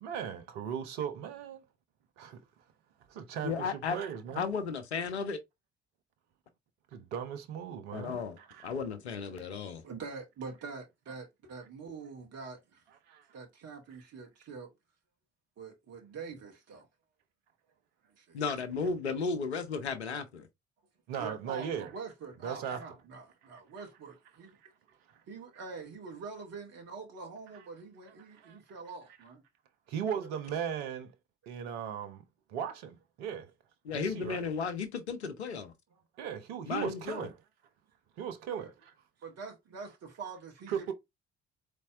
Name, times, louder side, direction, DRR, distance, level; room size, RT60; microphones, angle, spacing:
voice 1, 0.0-1.6 2.2-2.4 3.1-4.4 6.9-8.7 13.1-13.2 21.1-21.9 22.4-22.9 28.3-28.6 29.9-31.1 31.5-32.2 32.5-33.5 33.9-34.4 36.2-37.3 38.2-38.9 40.7-40.9, right 8 dB, 70° right, 0.8 m, -37 dB
voice 2, 3.4-4.0 4.4-5.4 7.9-8.4 8.6-9.8 18.3-20.5 33.8-35.7 36.7-37.3, left 5 dB, 90° left, 0.7 m, -34 dB
voice 3, 9.8-12.8 13.3-14.7 15.6-16.9 18.2-18.4 21.1-24.6 25.3-29.4 30.1-30.3 38.6-38.7 39.2-40.7, right 4 dB, 50° right, 1.6 m, -45 dB
4.2 x 3.4 x 3.4 m
figure-of-eight pair, 45°, 32 cm